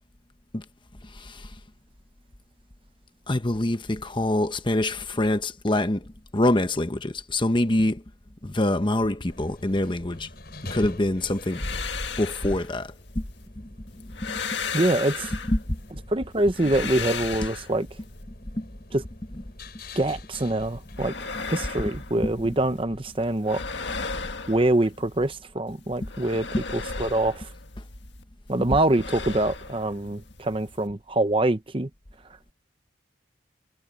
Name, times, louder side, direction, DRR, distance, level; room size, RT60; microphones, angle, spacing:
voice 1, 1.0-1.5 3.3-8.0 8.4-10.3 10.7-11.7 12.2-13.3 13.6-13.7 14.0-14.4 15.5-15.8 18.5-18.7 26.0-26.1, left 1 dB, 25° left, 1.1 m, -25 dB
sound 1, 9.3-23.1, left 1 dB, 60° left, 6.6 m, -43 dB
sound 2, 11.3-13.5 13.9-15.9 16.3-18.2 20.6-22.8 23.1-25.3 25.7-28.2 28.5-30.9, left 5 dB, 80° left, 1.8 m, -36 dB
voice 2, 14.7-15.3 16.1-17.9 18.9-19.0 20.0-21.2 21.5-23.6 24.5-26.4 26.7-27.5 28.5-31.9, right 2 dB, 30° right, 0.9 m, -24 dB
head